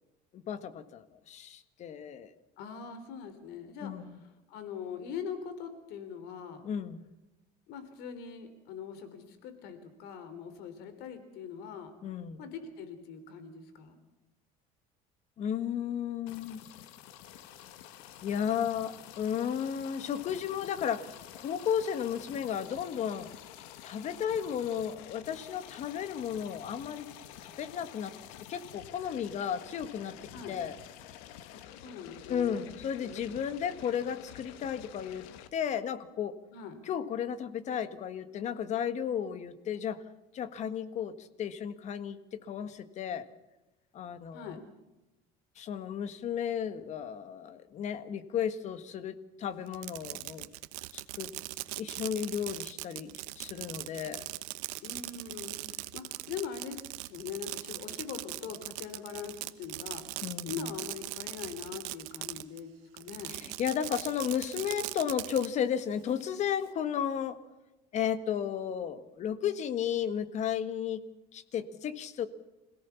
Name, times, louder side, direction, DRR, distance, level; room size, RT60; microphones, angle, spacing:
voice 1, 0.3-2.3 3.8-4.2 6.6-7.1 12.0-12.4 15.4-16.6 18.2-21.1 21.3-23.3 23.8-27.1 27.4-28.1 28.5-30.1 30.5-30.8 32.3-35.2 35.5-36.4 36.8-40.0 40.3-43.3 43.9-44.6 45.6-50.5 50.9-51.3 51.8-54.2 60.2-60.7 63.3-67.4 67.9-71.0 71.3-72.3, left 8 dB, 40° left, 12 dB, 1.6 m, -34 dB
voice 2, 2.6-6.6 7.7-11.9 12.4-14.0 30.3-30.6 31.5-32.6 33.0-33.3 36.5-36.8 44.3-44.6 54.8-63.4, left 7 dB, 65° left, 10 dB, 3.5 m, -42 dB
sound 1, 16.3-35.5, left 11 dB, 85° left, 1.8 m, -49 dB
Fireworks, 49.7-62.6 63.0-65.5, right 20 dB, 85° right, 1.1 m, -40 dB
26.0 x 17.0 x 7.1 m, 1.0 s
cardioid pair, 145°, 18 cm